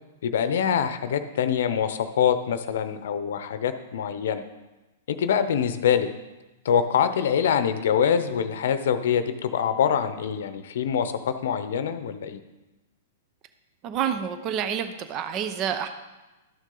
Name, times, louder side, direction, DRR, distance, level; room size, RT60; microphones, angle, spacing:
voice 1, 0.2-4.4 5.1-6.1 6.6-12.4, left 8 dB, 65° left, 11 dB, 0.7 m, -24 dB
voice 2, 13.8-15.9, right 8 dB, 35° right, 9 dB, 0.7 m, -28 dB
12.5 x 6.3 x 3.9 m, 1.1 s
hypercardioid pair, 115°, 0 cm